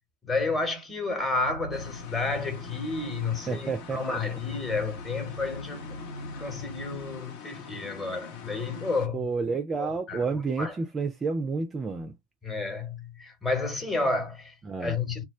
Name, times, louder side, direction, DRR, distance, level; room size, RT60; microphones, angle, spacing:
voice 1, 0.2-6.0 6.4-9.3 9.8-10.7 12.4-14.5 14.8-15.2, left 3 dB, 15° left, 1.0 m, -31 dB
sound 1, 1.4-7.2, left 1 dB, 85° left, 0.5 m, -43 dB
sound 2, 1.7-9.1, left 5 dB, 45° left, 0.6 m, -44 dB
voice 2, 3.5-4.4 9.1-12.1 14.6-15.0, right 4 dB, 20° right, 0.4 m, -30 dB
2.2 x 2.1 x 3.5 m
figure-of-eight pair, 90°, 0 cm